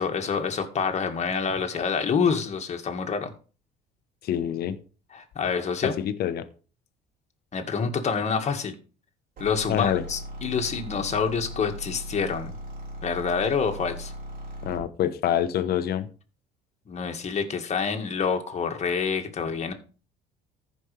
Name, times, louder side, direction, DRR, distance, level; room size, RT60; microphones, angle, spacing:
voice 1, 0.0-3.3 5.1-5.9 7.5-8.7 9.4-12.5 13.0-14.1 16.9-19.7, left 6 dB, 40° left, 5 dB, 1.9 m, -27 dB
voice 2, 4.2-4.8 5.8-6.4 9.7-10.0 14.6-16.1, left 10 dB, 60° left, 11 dB, 1.1 m, -26 dB
sound 1, 9.4-14.9, equal, 50° right, 3.7 m, -38 dB
15.0 x 5.3 x 3.3 m, 0.36 s
supercardioid pair, 95°, 18 cm